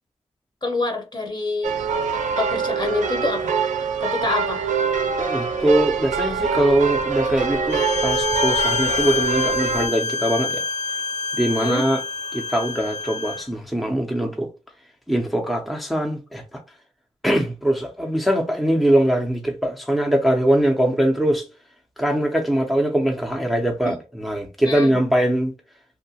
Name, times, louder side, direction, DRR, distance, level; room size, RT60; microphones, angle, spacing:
voice 1, 0.6-1.8 2.4-3.6 4.0-4.7 11.5-11.8 23.8-24.0 24.6-24.9, left 3 dB, 35° left, 1.0 m, -26 dB
sound 1, 1.6-9.9, right 6 dB, 85° right, 0.4 m, -24 dB
voice 2, 5.1-10.6 11.3-12.0 12.3-14.5 15.1-16.6 17.2-21.4 22.0-25.5, right 1 dB, ahead, 0.6 m, -22 dB
Bowed string instrument, 7.7-13.4, left 4 dB, 70° left, 0.4 m, -27 dB
2.7 x 2.1 x 2.8 m
cardioid pair, 60°, 12 cm